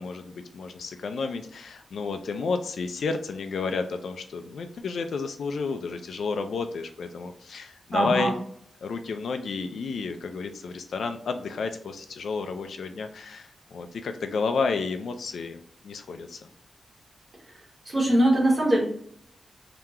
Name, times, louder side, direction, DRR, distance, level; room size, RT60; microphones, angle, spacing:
voice 1, 0.0-8.3 8.8-16.5, left 4 dB, 75° left, 7 dB, 0.5 m, -31 dB
voice 2, 7.9-8.3 17.9-18.8, right 1 dB, 30° right, -4 dB, 1.8 m, -21 dB
3.7 x 2.9 x 4.4 m, 0.65 s
wide cardioid pair, 180°, 0 cm